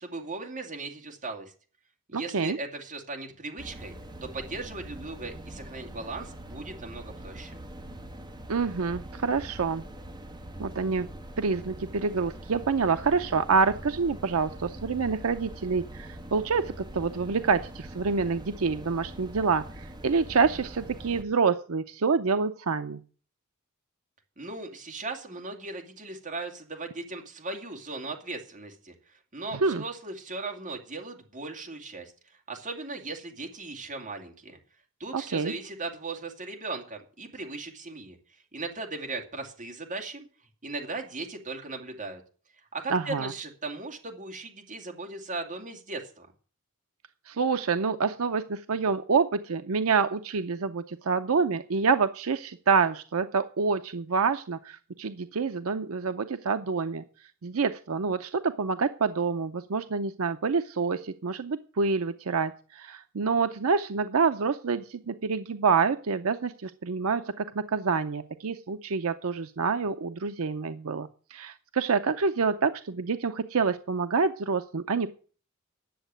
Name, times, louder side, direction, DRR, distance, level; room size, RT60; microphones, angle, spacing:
voice 1, 0.0-1.5 2.1-3.9 4.2-7.6 24.4-32.1 32.5-34.6 35.0-38.2 38.5-40.3 40.6-42.2 42.7-46.3, right 3 dB, 35° right, 2 dB, 2.6 m, -38 dB
voice 2, 2.1-2.6 8.5-9.8 10.6-11.1 11.4-23.0 29.6-29.8 35.1-35.5 42.9-43.3 47.3-57.0 57.4-75.1, right 5 dB, 75° right, 9 dB, 0.6 m, -27 dB
sound 1, 3.6-21.2, right 1 dB, 20° right, 1.5 m, -43 dB
10.5 x 7.4 x 9.0 m, 0.41 s
head